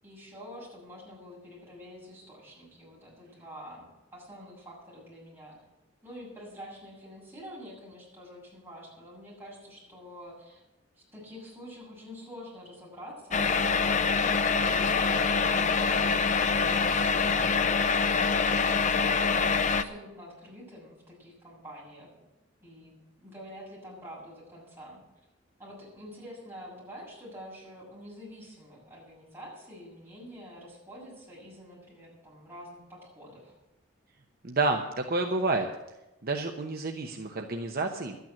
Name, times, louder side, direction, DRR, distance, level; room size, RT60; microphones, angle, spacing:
voice 1, 0.0-5.6 6.0-10.6 10.9-19.1 19.7-22.1 22.6-25.0 25.6-33.5, equal, 10° right, -6 dB, 7.0 m, -47 dB
sound 1, 13.3-19.8, left 5 dB, 35° left, 0.6 m, -25 dB
voice 2, 34.4-35.7 36.2-38.2, right 3 dB, 50° right, 3 dB, 0.9 m, -29 dB
12.0 x 9.2 x 8.8 m, 0.97 s
head